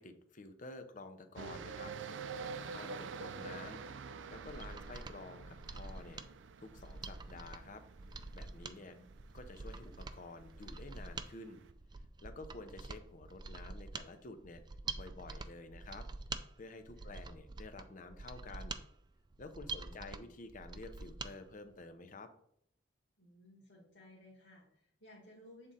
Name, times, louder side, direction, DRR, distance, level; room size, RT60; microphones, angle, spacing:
voice 1, 0.0-3.8 4.3-6.2 6.6-7.8 8.3-9.0 9.3-11.6 12.2-14.6 14.9-16.0 16.6-18.8 19.4-22.3, left 3 dB, 45° left, 8 dB, 0.7 m, -50 dB
sound 1, 1.4-11.7, right 5 dB, 85° right, 0.4 m, -48 dB
Mechanisms, 4.3-21.3 21.7-21.8, right 3 dB, 25° right, 0.3 m, -46 dB
voice 2, 8.7-9.1 17.0-17.2 19.8-20.3 23.2-25.7, left 1 dB, 80° left, -5 dB, 1.9 m, -59 dB
7.6 x 3.7 x 4.1 m, 0.70 s
head